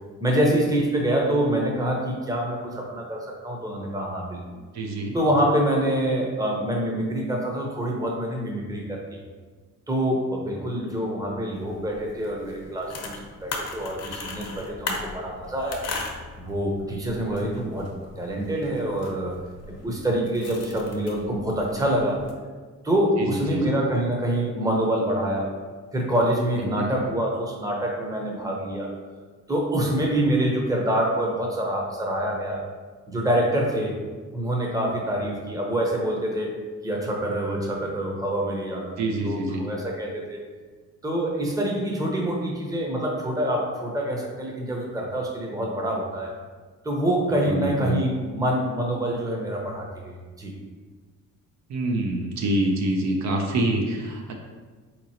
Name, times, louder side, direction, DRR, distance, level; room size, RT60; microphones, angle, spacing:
voice 1, 0.2-4.6 5.1-9.2 9.9-13.1 13.4-15.8 16.4-17.9 18.2-19.4 19.7-22.2 22.8-25.5 25.9-28.9 29.5-32.6 33.1-34.0 34.3-36.6 36.8-39.0 39.2-40.4 41.0-46.3 46.8-50.5, right 1 dB, 10° right, -1 dB, 0.7 m, -26 dB
voice 2, 4.7-5.2 23.2-23.6 26.6-27.0 39.0-39.7 47.5-48.0 51.7-54.3, right 1 dB, 65° right, 2 dB, 0.5 m, -26 dB
sound 1, 11.5-22.3, left 3 dB, 55° left, 0.7 m, -38 dB
3.8 x 3.0 x 2.7 m, 1.4 s
cardioid pair, 90°, 30 cm